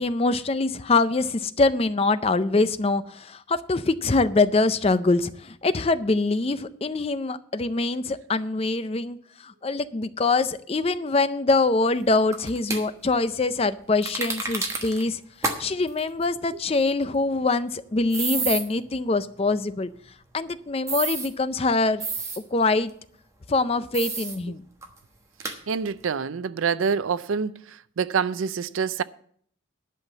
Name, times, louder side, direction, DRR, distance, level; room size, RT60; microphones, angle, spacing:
voice 1, 0.0-9.2 9.4-15.2 15.6-19.9 20.3-22.0 22.5-22.9 23.5-24.6, left 3 dB, 30° left, 0.4 m, -24 dB
sound 1, 12.3-12.8 14.0-15.0 15.4-15.6 15.9-16.0 18.1-18.6 20.9-21.3 22.0-22.4 23.9-24.4 24.8-24.9 25.4-25.6, right 3 dB, 15° right, 1.2 m, -29 dB
voice 2, 25.7-27.5 28.0-29.0, right 6 dB, 80° right, 0.5 m, -26 dB
11.0 x 5.8 x 8.1 m
head